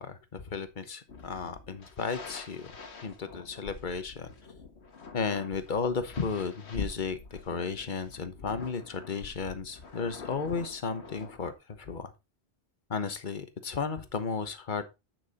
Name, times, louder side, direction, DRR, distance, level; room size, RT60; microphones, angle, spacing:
voice 1, 0.0-2.7 3.0-4.3 5.1-12.1 12.9-14.8, left 5 dB, 50° left, 10 dB, 1.3 m, -34 dB
sound 1, 1.1-11.5, left 4 dB, 85° left, 1.8 m, -46 dB
9.6 x 6.1 x 4.1 m, 0.25 s
omnidirectional pair, 1.1 m